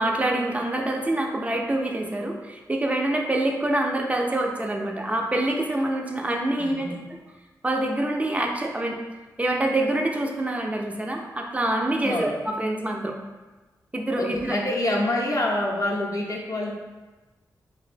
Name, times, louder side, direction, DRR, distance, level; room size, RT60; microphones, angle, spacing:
voice 1, 0.0-6.9 7.6-9.0 9.4-13.1 13.9-14.6, right 1 dB, 20° right, 1 dB, 0.4 m, -26 dB
voice 2, 6.6-7.0 12.0-12.3 14.2-16.7, left 1 dB, 50° left, -2 dB, 0.5 m, -26 dB
2.5 x 2.2 x 2.4 m, 1.2 s
cardioid pair, 50°, 7 cm